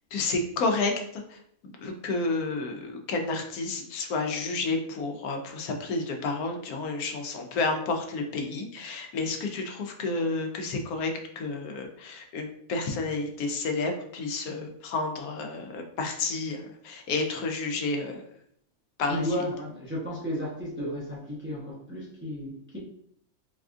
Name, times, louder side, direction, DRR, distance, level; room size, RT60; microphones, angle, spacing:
voice 1, 0.1-1.4 1.8-18.2 19.0-19.4, left 3 dB, 85° left, 4 dB, 1.1 m, -30 dB
voice 2, 19.1-22.8, equal, 15° right, -5 dB, 0.5 m, -33 dB
4.1 x 2.4 x 2.5 m, 0.68 s
omnidirectional pair, 1.5 m